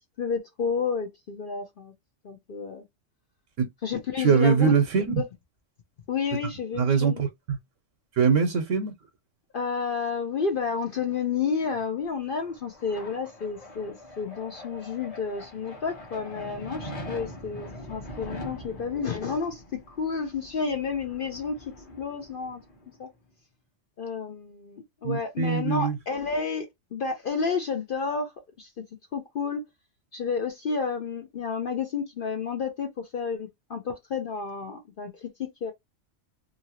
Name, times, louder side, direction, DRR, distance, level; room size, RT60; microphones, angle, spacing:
voice 1, 0.0-1.9 2.2-2.8 3.8-4.7 5.2-5.3 6.1-7.2 9.5-21.6 22.0-22.6 23.0-23.1 24.0-26.7 26.9-28.3 28.6-28.7 29.1-29.6 30.1-35.7, left 5 dB, 55° left, 0.7 m, -31 dB
voice 2, 4.2-5.2 6.7-7.6 8.2-8.9 25.0-26.0, right 6 dB, 85° right, 1.0 m, -22 dB
sound 1, 11.8-23.0, left 1 dB, 30° left, 1.0 m, -43 dB
2.7 x 2.6 x 2.8 m
omnidirectional pair, 1.3 m